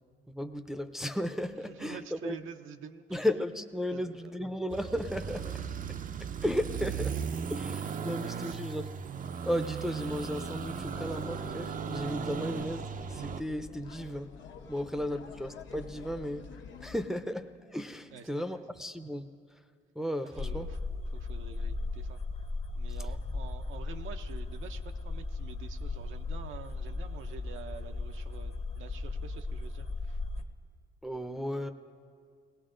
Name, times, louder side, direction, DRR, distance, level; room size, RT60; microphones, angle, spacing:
voice 1, 0.3-2.4 3.1-5.7 6.2-9.0 9.4-14.4 14.7-19.6 19.9-20.7 31.0-31.7, equal, ahead, 6 dB, 0.6 m, -35 dB
voice 2, 1.7-3.3 3.9-4.2 4.4-4.6 8.1-8.7 12.3-12.5 14.7-15.1 18.1-18.3 20.4-20.8 21.1-22.2 22.7-30.2, right 7 dB, 80° right, 6 dB, 0.7 m, -47 dB
sound 1, 4.7-13.4, right 7 dB, 45° right, 0.5 m, -37 dB
sound 2, 10.1-17.1, left 6 dB, 70° left, 1.1 m, -48 dB
sound 3, 20.4-30.4, left 3 dB, 30° left, 0.9 m, -37 dB
18.5 x 17.5 x 3.8 m, 2.1 s
cardioid pair, 90°, 20 cm